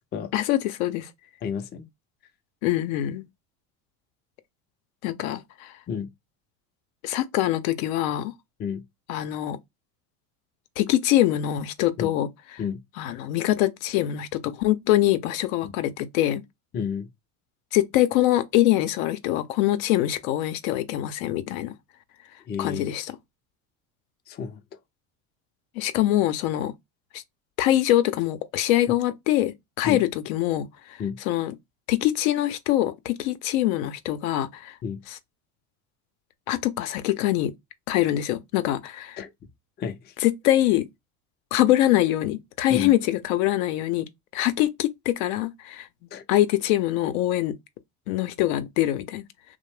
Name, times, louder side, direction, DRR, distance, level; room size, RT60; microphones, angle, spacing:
voice 1, 0.3-1.1 2.6-3.2 5.0-5.7 7.0-8.3 9.1-9.6 10.8-12.6 13.0-16.4 17.7-21.7 22.6-23.2 25.8-26.7 27.1-27.2 27.6-31.0 31.3-31.6 31.9-34.8 35.1-35.2 36.5-37.5 37.9-39.2 40.2-40.9 41.5-44.1 44.3-45.9 46.3-47.5 48.1-49.2, left 14 dB, 75° left, 0.5 m, -24 dB
voice 2, 1.4-1.9 5.9-6.1 8.6-8.8 12.0-12.1 12.6-12.8 15.6-15.7 16.7-17.1 22.5-22.9 24.3-24.6 29.8-30.0 31.0-31.2 34.8-35.0 39.2-39.3 39.8-40.1 42.7-42.9 46.1-46.2, left 7 dB, 25° left, 0.4 m, -31 dB
2.5 x 2.1 x 3.1 m
supercardioid pair, 90°, 42 cm